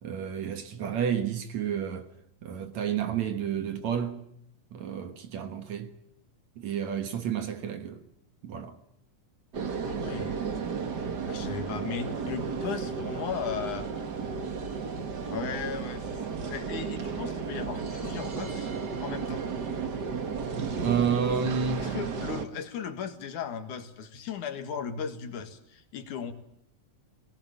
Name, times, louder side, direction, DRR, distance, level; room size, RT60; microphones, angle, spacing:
voice 1, 0.0-2.1 2.4-4.2 4.7-5.9 6.6-8.0 8.4-8.8 20.7-21.9, right 7 dB, 60° right, 2.4 m, -30 dB
sound 1, 9.5-22.5, right 5 dB, 40° right, 1.6 m, -33 dB
voice 2, 9.8-10.4 11.3-13.9 14.4-14.5 15.3-18.7 19.0-19.4 21.8-26.3, left 7 dB, 65° left, 3.0 m, -36 dB
22.0 x 19.0 x 8.9 m
omnidirectional pair, 4.0 m